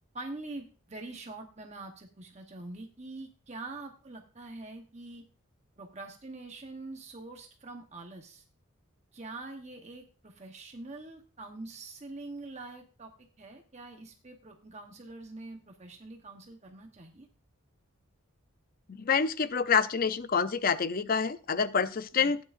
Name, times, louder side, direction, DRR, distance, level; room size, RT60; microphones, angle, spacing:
voice 1, 0.1-5.2 5.8-8.4 9.1-13.1 13.4-17.3 22.1-22.4, right 2 dB, 30° right, 3 dB, 1.0 m, -44 dB
voice 2, 18.9-22.4, left 6 dB, 40° left, 14 dB, 0.5 m, -27 dB
15.5 x 9.5 x 2.5 m, 0.35 s
head